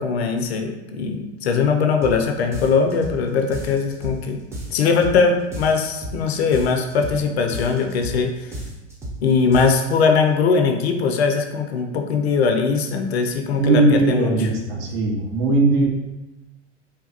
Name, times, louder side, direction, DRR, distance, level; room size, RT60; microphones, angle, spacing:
voice 1, 0.0-4.4 4.7-8.6 9.2-14.5, left 5 dB, 60° left, 4 dB, 0.5 m, -20 dB
sound 1, 2.0-2.2 2.5-3.2 3.5-4.2 4.5-5.2 5.5-6.2 6.5-7.2 7.5-8.2 8.5-9.2 9.5-10.0, right 1 dB, 10° right, 0.4 m, -33 dB
voice 2, 13.6-15.9, right 2 dB, 45° right, 1 dB, 0.7 m, -19 dB
3.2 x 2.2 x 2.8 m, 1.0 s
figure-of-eight pair, 90°, 36 cm